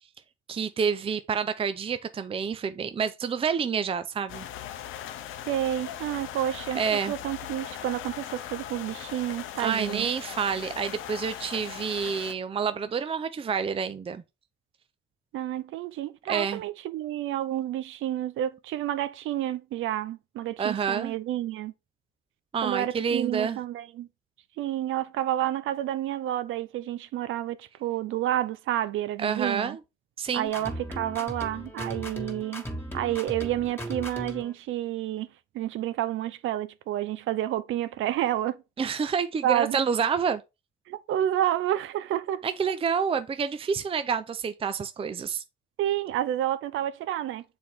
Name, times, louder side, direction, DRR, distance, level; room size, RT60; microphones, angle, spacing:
voice 1, 0.5-4.5 6.7-7.1 9.6-14.2 16.3-16.6 20.6-21.1 22.5-23.6 29.2-29.8 30.2-30.5 38.8-40.4 42.4-45.4, right 6 dB, 30° right, 0.5 m, -28 dB
sound 1, 4.3-12.3, left 11 dB, 90° left, 0.7 m, -39 dB
voice 2, 5.5-10.1 15.3-21.7 22.6-24.1 24.6-29.8 30.3-32.6 32.9-35.3 35.5-38.6 39.4-39.8 40.9-42.5 45.8-47.4, right 12 dB, 80° right, 0.6 m, -30 dB
sound 2, 30.5-34.5, equal, 10° left, 1.9 m, -37 dB
6.7 x 4.3 x 3.5 m
cardioid pair, 90°, 20 cm